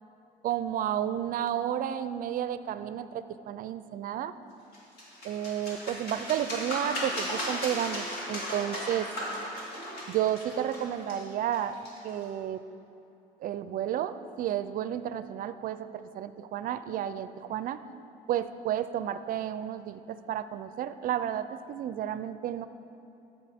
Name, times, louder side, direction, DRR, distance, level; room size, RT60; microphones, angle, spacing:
voice 1, 0.4-4.3 5.2-9.1 10.1-11.8 12.0-12.6 13.4-17.8 18.3-22.7, right 10 dB, 55° right, 12 dB, 0.4 m, -32 dB
sound 1, 4.7-12.2, equal, 70° left, 2.3 m, -36 dB
13.0 x 7.0 x 3.5 m, 2.8 s
cardioid pair, 110°, 17 cm